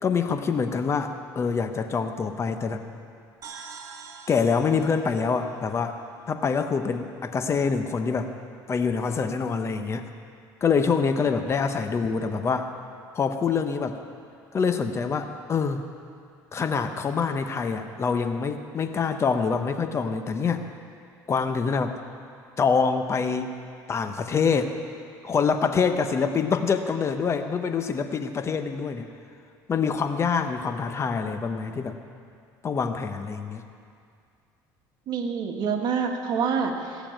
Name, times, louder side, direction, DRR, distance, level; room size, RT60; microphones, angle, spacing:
voice 1, 0.0-2.8 4.3-6.0 6.3-8.3 8.7-10.0 10.6-12.7 13.1-14.0 14.5-15.8 16.5-20.6 21.3-22.0 22.6-23.6 23.9-24.7 25.2-29.1 29.7-31.9 32.6-33.6, left 5 dB, 35° left, 7 dB, 0.9 m, -25 dB
sound 1, 3.4-7.0, right 5 dB, 45° right, 1.8 m, -46 dB
voice 2, 35.1-37.1, right 6 dB, 60° right, 3 dB, 1.7 m, -27 dB
16.5 x 7.0 x 9.1 m, 2.3 s
cardioid pair, 105°, 8 cm